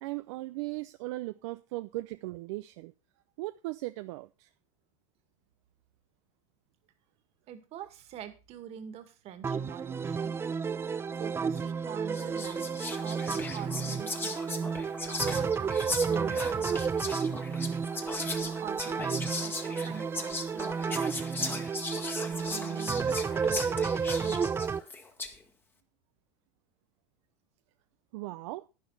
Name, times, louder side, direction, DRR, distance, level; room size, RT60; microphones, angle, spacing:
voice 1, 0.0-2.9 3.4-4.5 28.1-28.6, right 20 dB, 65° right, 0.6 m, -38 dB
voice 2, 7.5-10.4 11.2-13.3 13.5-14.8 15.3-15.7 16.1-17.5 18.4-21.7 22.3-23.9 24.2-24.8, right 10 dB, 40° right, 2.0 m, -46 dB
sound 1, 9.4-24.8, right 6 dB, 15° right, 0.6 m, -32 dB
Whispering, 11.6-11.8 12.1-25.4, left 3 dB, 15° left, 1.5 m, -38 dB
11.0 x 10.5 x 4.1 m
supercardioid pair, 135°, 17 cm